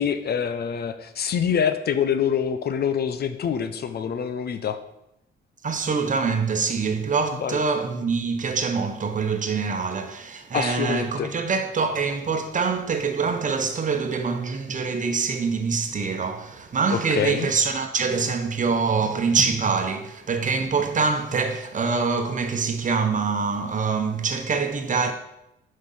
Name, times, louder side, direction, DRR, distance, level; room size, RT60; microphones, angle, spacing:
voice 1, 0.0-4.8 7.4-7.6 10.5-11.3 16.9-17.5, left 8 dB, 55° left, 0.7 m, -25 dB
voice 2, 5.6-25.1, right 5 dB, 40° right, 1.1 m, -25 dB
6.1 x 5.2 x 5.6 m
cardioid pair, 90°, 20 cm